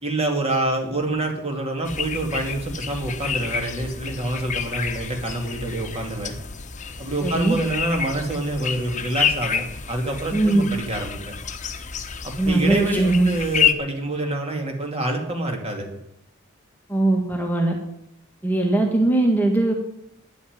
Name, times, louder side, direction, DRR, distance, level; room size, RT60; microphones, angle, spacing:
voice 1, 0.0-6.4 7.0-11.3 12.2-15.9, right 2 dB, 30° right, 2 dB, 2.5 m, -26 dB
sound 1, 1.8-13.7, left 7 dB, 35° left, 1.0 m, -29 dB
voice 2, 7.2-7.5 10.3-10.7 12.4-13.3 16.9-17.8 18.4-19.7, right 2 dB, 10° left, 1 dB, 1.6 m, -20 dB
10.5 x 8.4 x 9.5 m, 0.78 s
head